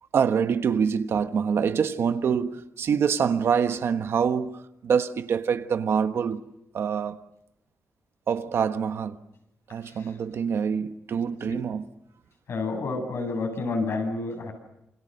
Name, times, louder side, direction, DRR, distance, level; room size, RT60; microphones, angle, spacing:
voice 1, 0.1-6.4 6.7-7.2 8.3-9.2 9.7-11.9, right 7 dB, 60° right, 1.3 m, -25 dB
voice 2, 9.8-10.1 11.5-11.6 12.5-14.5, left 3 dB, 60° left, 7.8 m, -30 dB
28.5 x 28.0 x 6.6 m
wide cardioid pair, 160°, 5 cm